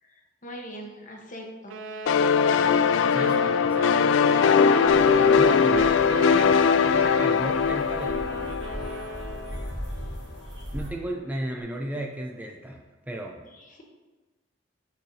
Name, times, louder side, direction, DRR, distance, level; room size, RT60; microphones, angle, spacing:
voice 1, 0.0-1.8 13.5-13.8, equal, 45° left, 1 dB, 1.0 m, -42 dB
sound 1, 1.7-9.7, right 4 dB, 85° right, 0.5 m, -38 dB
sound 2, 2.1-9.5, left 6 dB, 90° left, 0.3 m, -21 dB
voice 2, 2.6-4.1 5.4-8.6 10.7-13.4, right 1 dB, 10° right, 1 dB, 0.4 m, -35 dB
sound 3, 4.9-10.9, equal, 65° right, 1.4 m, -39 dB
6.6 x 6.3 x 2.7 m, 1.2 s
head